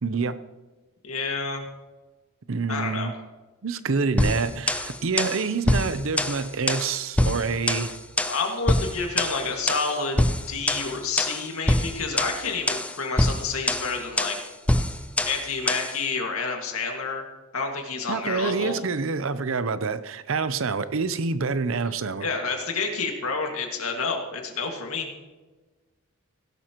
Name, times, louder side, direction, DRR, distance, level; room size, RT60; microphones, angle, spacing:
voice 1, 0.0-0.4 2.5-3.1 3.6-8.0 18.1-22.3, right 4 dB, 65° right, 13 dB, 0.7 m, -27 dB
voice 2, 1.0-1.6 2.7-3.1 8.2-14.4 15.3-17.2 17.5-18.8 22.2-25.1, left 4 dB, 85° left, 2 dB, 2.0 m, -29 dB
sound 1, 4.2-16.0, left 1 dB, 5° left, 0.5 m, -25 dB
16.5 x 12.0 x 3.0 m, 1.2 s
head